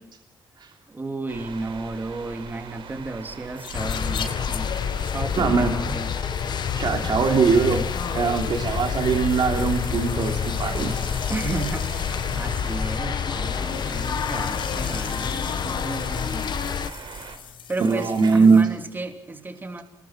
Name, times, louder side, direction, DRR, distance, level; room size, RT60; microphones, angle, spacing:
voice 1, 0.9-4.7 5.0-6.1 11.3-16.5 17.7-19.8, right 3 dB, 25° right, 5 dB, 3.2 m, -33 dB
sound 1, 1.3-17.4, right 6 dB, 90° right, 4.1 m, -41 dB
sound 2, 3.5-18.6, left 7 dB, 80° left, 4.0 m, -41 dB
sound 3, 3.7-16.9, left 7 dB, 60° left, 1.0 m, -28 dB
voice 2, 5.4-5.9 6.7-7.8 8.1-11.0 17.8-18.7, right 5 dB, 65° right, 3 dB, 2.8 m, -21 dB
29.5 x 21.0 x 6.1 m, 0.71 s
wide cardioid pair, 135°, 8 cm